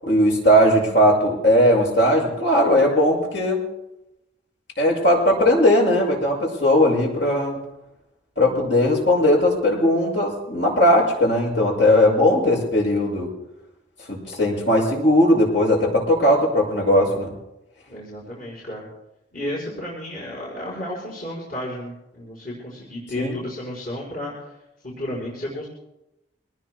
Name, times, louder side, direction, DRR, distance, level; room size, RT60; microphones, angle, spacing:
voice 1, 0.0-3.6 4.8-7.6 8.4-13.3 14.1-17.3 23.2-23.3, left 1 dB, 65° left, -2 dB, 7.1 m, -18 dB
voice 2, 17.9-18.9 19.3-24.3 24.8-25.7, left 1 dB, 50° left, -6 dB, 5.2 m, -32 dB
24.5 x 19.5 x 2.3 m, 0.91 s
head